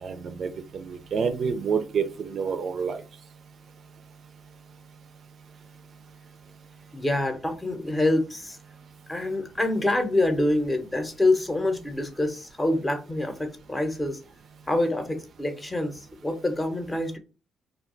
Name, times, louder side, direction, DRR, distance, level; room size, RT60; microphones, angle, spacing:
voice 1, 0.0-3.0, right 6 dB, 55° right, 0.4 m, -28 dB
voice 2, 6.9-8.6 9.1-14.2 14.7-17.2, left 2 dB, 15° left, 0.7 m, -26 dB
2.3 x 2.2 x 3.7 m
cardioid pair, 90°, 0 cm